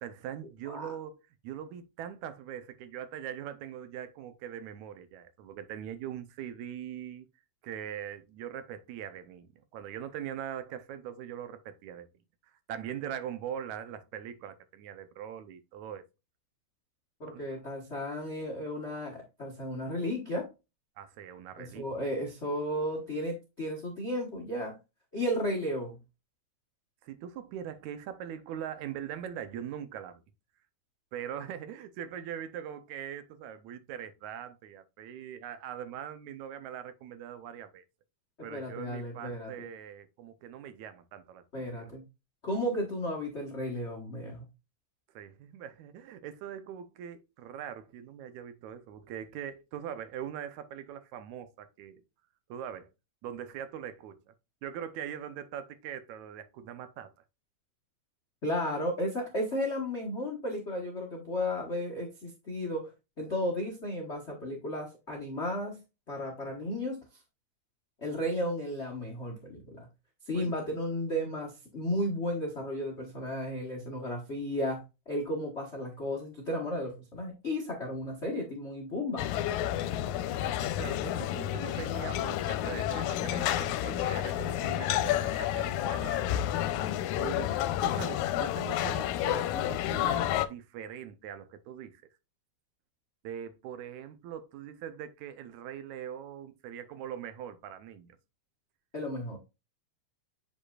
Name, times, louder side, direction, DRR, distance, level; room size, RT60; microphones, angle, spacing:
voice 1, 0.0-1.2 1.4-7.3 7.6-12.1 12.4-16.0 17.3-17.4 21.0-21.9 27.0-30.2 31.1-37.8 38.4-42.0 45.2-52.0 52.5-52.9 53.2-54.3 54.6-57.1 70.3-70.6 80.4-86.4 87.2-92.0 93.2-98.1, right 9 dB, 80° right, 2.1 m, -42 dB
voice 2, 17.2-20.5 21.6-24.7 25.1-26.0 38.5-39.7 41.5-42.1 42.4-44.4 58.4-62.9 63.2-65.8 66.1-67.0 68.0-69.9 70.2-79.3 98.9-99.4, left 1 dB, 65° left, 0.6 m, -34 dB
sound 1, 79.2-90.5, left 12 dB, 85° left, 2.0 m, -30 dB
8.5 x 5.2 x 2.4 m
omnidirectional pair, 3.3 m